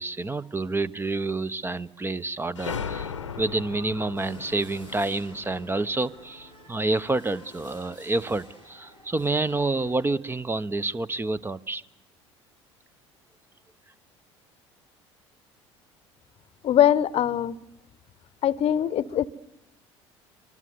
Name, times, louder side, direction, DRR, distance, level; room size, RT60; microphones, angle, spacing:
voice 1, 0.0-11.8, right 2 dB, 15° right, 17 dB, 0.9 m, -28 dB
sound 1, 2.5-7.0, left 6 dB, 85° left, 1.0 m, -38 dB
sound 2, 4.1-10.0, equal, 85° right, 5.2 m, -51 dB
voice 2, 16.6-17.6 18.4-19.3, left 11 dB, 40° left, 20 dB, 1.0 m, -22 dB
24.0 x 24.0 x 8.0 m, 0.85 s
figure-of-eight pair, 60°, 15 cm